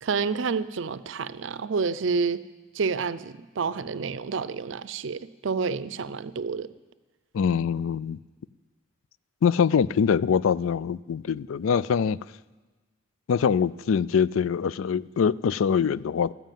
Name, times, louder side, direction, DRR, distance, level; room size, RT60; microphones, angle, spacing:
voice 1, 0.0-2.4 2.7-6.7, right 5 dB, 65° right, 0.5 m, -29 dB
voice 2, 7.3-8.2 9.4-12.2 13.3-16.3, left 7 dB, 80° left, 0.4 m, -23 dB
13.5 x 10.5 x 7.5 m
head